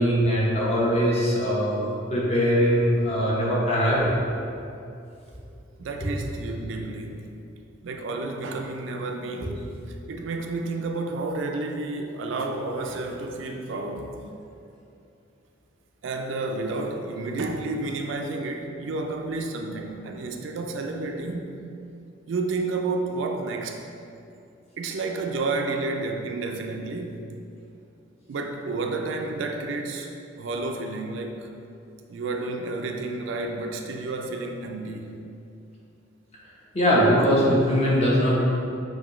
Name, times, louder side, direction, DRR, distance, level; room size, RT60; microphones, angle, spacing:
voice 1, 0.0-4.2 36.7-38.4, equal, 30° left, -6 dB, 0.9 m, -21 dB
voice 2, 5.8-7.3 7.8-14.2 16.0-21.6 22.3-23.8 24.8-27.2 28.3-30.1 30.4-31.5 32.1-35.2, right 3 dB, 70° right, 3 dB, 0.4 m, -31 dB
5.9 x 2.7 x 3.0 m, 2.6 s
head